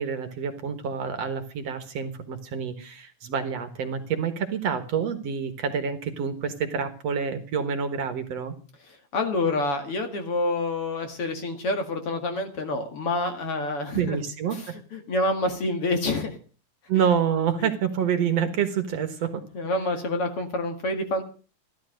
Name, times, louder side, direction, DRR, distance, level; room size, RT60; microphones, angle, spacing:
voice 1, 0.0-8.5 13.9-14.8 16.9-19.4, right 7 dB, 60° right, 9 dB, 2.4 m, -27 dB
voice 2, 9.1-14.2 14.9-16.4 16.9-17.1 17.6-17.7 19.5-21.2, left 2 dB, 50° left, 6 dB, 2.8 m, -27 dB
15.5 x 12.0 x 6.5 m, 0.38 s
omnidirectional pair, 3.6 m